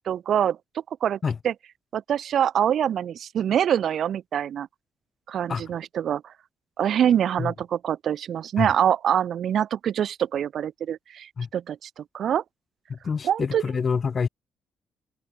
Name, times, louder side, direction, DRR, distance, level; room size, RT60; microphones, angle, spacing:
voice 1, 0.1-0.6 1.0-1.2 1.4-1.5 1.9-4.7 5.3-6.3 6.8-12.4 13.2-13.6, right 9 dB, 65° right, 0.7 m, -25 dB
voice 2, 12.9-14.3, left 5 dB, 40° left, 0.5 m, -27 dB
cardioid pair, 90°, 0 cm